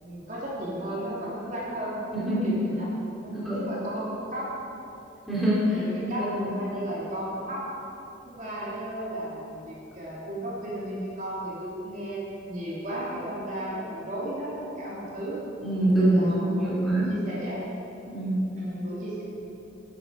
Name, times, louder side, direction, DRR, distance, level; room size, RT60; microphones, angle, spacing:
voice 1, 0.0-2.9 3.2-4.5 5.7-7.7 8.3-15.4 15.9-17.6 18.5-19.2, right 1 dB, 45° right, -7 dB, 2.8 m, -34 dB
voice 2, 2.1-2.5 3.3-3.6 5.3-5.8 6.2-6.5 15.6-17.1 18.1-18.4, right 1 dB, ahead, -9 dB, 2.6 m, -24 dB
13.0 x 8.3 x 5.3 m, 3.0 s
head